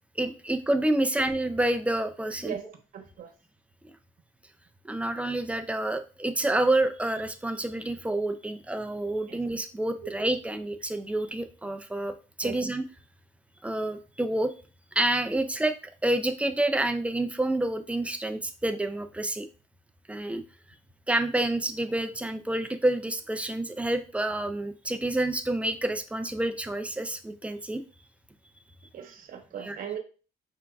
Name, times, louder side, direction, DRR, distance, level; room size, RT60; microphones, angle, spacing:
voice 1, 0.2-2.5 4.8-12.1 12.4-12.8 13.6-14.5 15.0-15.7 16.0-19.5 20.1-20.4 21.1-27.8 29.6-29.8, right 1 dB, 10° right, 8 dB, 0.4 m, -28 dB
voice 2, 2.4-3.3 9.3-9.4 12.4-12.6 28.9-30.0, right 8 dB, 55° right, 4 dB, 1.0 m, -38 dB
4.9 x 3.5 x 2.3 m, 0.35 s
cardioid pair, 110°, 17 cm